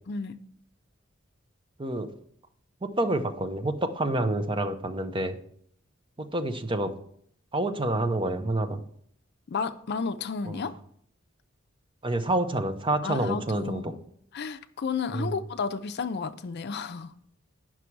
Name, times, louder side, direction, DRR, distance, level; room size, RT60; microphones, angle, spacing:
voice 1, 0.1-0.4 9.5-10.7 13.0-14.0 14.3-17.1, left 5 dB, 55° left, 0.5 m, -32 dB
voice 2, 2.8-5.4 6.2-6.9 7.5-8.8 10.5-10.7 12.0-13.9 15.1-15.3, right 1 dB, 25° right, 0.7 m, -28 dB
9.6 x 6.0 x 4.6 m
head